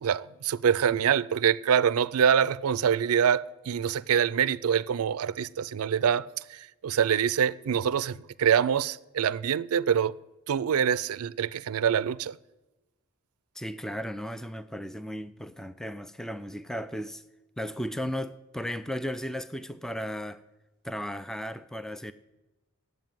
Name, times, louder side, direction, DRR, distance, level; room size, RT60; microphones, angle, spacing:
voice 1, 0.0-6.2 6.5-10.1 10.5-12.4, right 8 dB, 80° right, 0.4 m, -25 dB
voice 2, 13.6-17.2 17.6-20.4 20.8-22.1, equal, ahead, 0.3 m, -35 dB
9.5 x 8.0 x 9.1 m
head